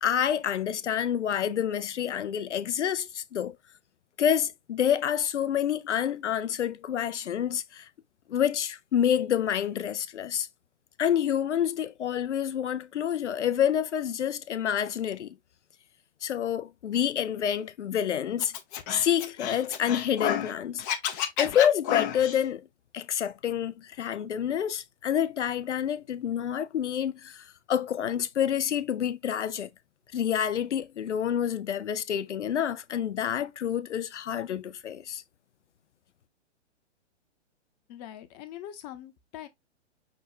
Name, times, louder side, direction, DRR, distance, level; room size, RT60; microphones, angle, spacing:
voice 1, 0.0-3.5 4.2-7.9 8.3-10.5 11.0-15.4 16.2-18.5 18.9-20.8 21.2-22.7 22.9-29.7 30.1-35.2, left 9 dB, 80° left, 0.7 m, -28 dB
Scratching (performance technique), 18.4-20.5 20.8-22.4, left 9 dB, 20° left, 0.3 m, -30 dB
voice 2, 37.9-39.5, left 11 dB, 35° left, 0.8 m, -43 dB
5.9 x 2.3 x 3.7 m
hypercardioid pair, 120°, 35 cm